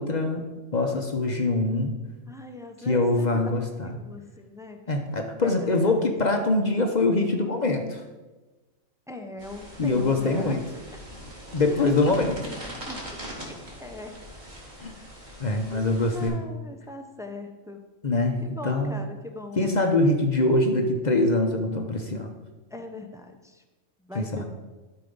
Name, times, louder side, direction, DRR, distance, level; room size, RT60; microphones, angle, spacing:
voice 1, 0.0-1.9 2.8-3.9 4.9-8.0 9.8-10.6 11.5-12.4 14.8-14.9 15.4-16.4 18.0-19.0 19.6-22.3 24.1-24.5, left 2 dB, 40° left, 4 dB, 0.8 m, -24 dB
voice 2, 2.3-3.4 3.8-4.8 5.4-6.1 9.1-10.6 10.9-11.0 11.7-11.9 12.1-13.5 13.8-14.2 15.7-17.8 18.4-19.7 22.7-23.6 24.0-24.5, left 2 dB, 5° right, 4 dB, 0.5 m, -40 dB
sound 1, 9.4-16.3, equal, 35° right, 2.3 m, -42 dB
12.0 x 4.7 x 5.3 m, 1.2 s
omnidirectional pair, 1.4 m